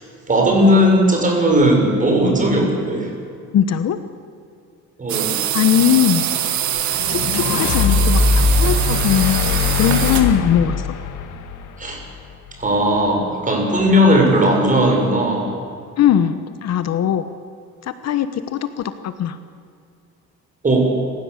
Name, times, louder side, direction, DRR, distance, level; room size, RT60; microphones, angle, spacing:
voice 1, 0.3-3.1 5.0-5.3 11.8-12.0 12.6-15.5 20.6-20.9, equal, 25° right, 1 dB, 6.8 m, -16 dB
voice 2, 3.5-4.0 5.5-6.3 7.1-10.8 16.0-17.3 17.8-19.4, left 9 dB, 60° left, 11 dB, 1.2 m, -20 dB
sound 1, 5.1-10.4, right 10 dB, 70° right, 2.0 m, -23 dB
sound 2, 7.0-12.3, left 4 dB, 85° left, 2.1 m, -20 dB
30.0 x 16.0 x 8.3 m, 2.4 s
cardioid pair, 130°, 30 cm